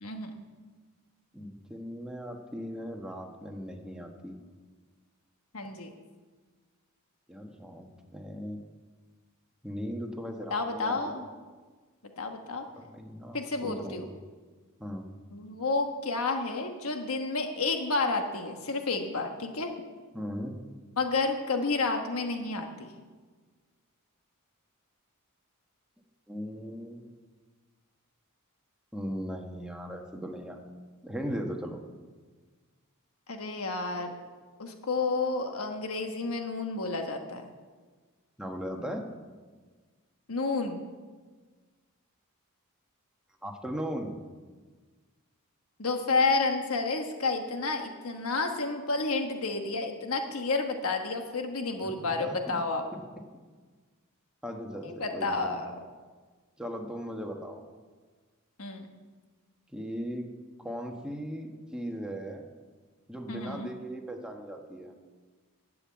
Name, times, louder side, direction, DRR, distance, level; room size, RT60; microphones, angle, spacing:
voice 1, 0.0-0.3 5.5-5.9 10.5-11.2 12.2-12.6 13.3-14.1 15.3-19.7 21.0-22.7 33.3-34.2 34.6-37.5 40.3-40.8 45.8-52.8 54.8-55.7 58.6-58.9 63.3-63.7, left 3 dB, 75° left, 4 dB, 1.2 m, -30 dB
voice 2, 1.3-4.4 7.3-8.6 9.6-11.1 12.8-14.1 14.8-15.1 20.1-20.6 26.3-27.1 28.9-30.6 31.0-31.8 38.4-39.0 43.4-44.2 52.0-52.6 52.9-53.0 54.4-55.6 56.6-57.6 59.7-60.2 60.6-62.4 63.1-64.9, equal, 5° right, 2 dB, 1.3 m, -38 dB
11.0 x 7.7 x 8.6 m, 1.4 s
head